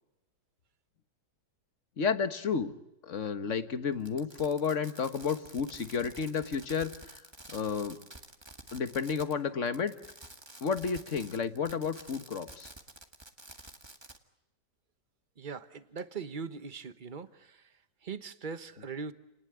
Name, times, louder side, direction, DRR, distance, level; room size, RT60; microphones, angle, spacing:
voice 1, 2.0-2.7 3.0-7.2 7.5-8.0 8.7-9.9 10.6-12.7, left 6 dB, 45° left, 10 dB, 1.5 m, -31 dB
Fireworks, 4.0-9.4 9.7-14.2, right 2 dB, 15° right, 1.7 m, -50 dB
voice 2, 15.4-17.6 18.0-19.1, right 5 dB, 30° right, 12 dB, 1.1 m, -40 dB
29.5 x 19.5 x 9.1 m, 0.94 s
omnidirectional pair, 1.8 m